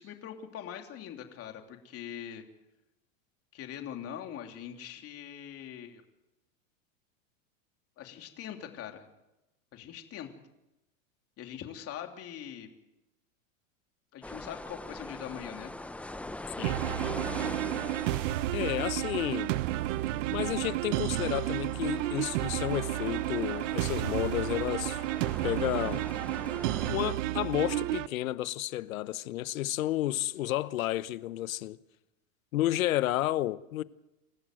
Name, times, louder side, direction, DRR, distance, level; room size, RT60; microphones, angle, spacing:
voice 1, 0.0-2.4 3.5-6.0 8.0-9.0 9.7-10.3 11.4-12.7 14.1-15.7, left 10 dB, 35° left, 3.1 m, -42 dB
sound 1, 14.2-26.9, left 1 dB, 5° left, 0.9 m, -43 dB
sound 2, 16.6-28.1, right 16 dB, 60° right, 0.9 m, -31 dB
voice 2, 18.5-19.5 20.3-25.0 25.4-26.0 26.9-31.8 32.5-33.8, left 15 dB, 80° left, 1.0 m, -31 dB
27.0 x 15.0 x 7.8 m
supercardioid pair, 125°, 41 cm